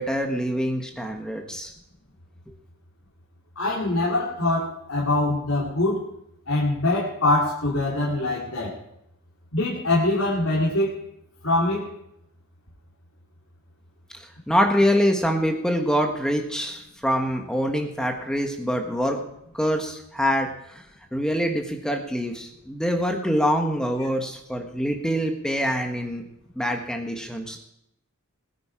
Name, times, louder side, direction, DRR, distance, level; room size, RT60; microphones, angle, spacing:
voice 1, 0.0-1.7 14.1-19.2 19.5-20.8 21.1-26.2 26.5-27.6, equal, 5° left, 3 dB, 1.3 m, -25 dB
voice 2, 3.6-6.1 6.5-8.8 9.5-11.0 11.4-11.9, left 2 dB, 70° left, -4 dB, 3.1 m, -23 dB
20.5 x 9.6 x 4.9 m, 0.78 s
head